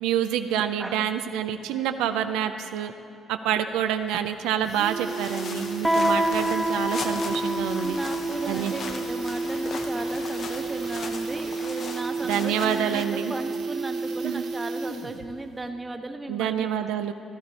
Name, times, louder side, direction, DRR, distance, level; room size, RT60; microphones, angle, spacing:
voice 1, 0.0-2.9 3.3-8.0 8.5-8.7 12.2-13.3 14.2-14.4 16.3-17.1, right 9 dB, 90° right, 7 dB, 0.4 m, -27 dB
sound 1, 3.7-3.8 4.1-4.2 4.5-15.3 15.6-15.7, right 3 dB, 60° right, 0.8 m, -32 dB
sound 2, 5.0-13.1, left 5 dB, 60° left, 0.9 m, -38 dB
Guitar, 5.8-11.3, right 1 dB, ahead, 1.2 m, -29 dB
voice 2, 7.7-16.8, right 2 dB, 20° right, 5 dB, 1.1 m, -36 dB
15.0 x 13.0 x 4.1 m, 2.7 s
supercardioid pair, 75°, 0 cm